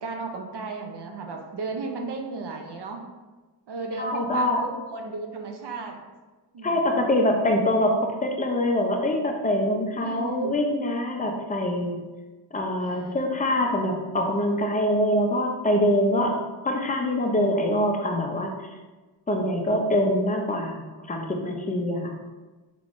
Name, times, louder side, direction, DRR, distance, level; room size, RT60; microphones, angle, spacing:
voice 1, 0.0-3.0 3.7-6.0 6.5-7.1 10.0-10.6 12.8-13.3 16.2-16.4, right 3 dB, 60° right, 3 dB, 0.6 m, -35 dB
voice 2, 4.0-4.6 6.6-12.0 12.5-16.4 16.6-18.5 19.3-22.1, left 1 dB, 20° left, 2 dB, 0.4 m, -24 dB
3.5 x 3.0 x 2.5 m, 1.2 s
wide cardioid pair, 80°, 47 cm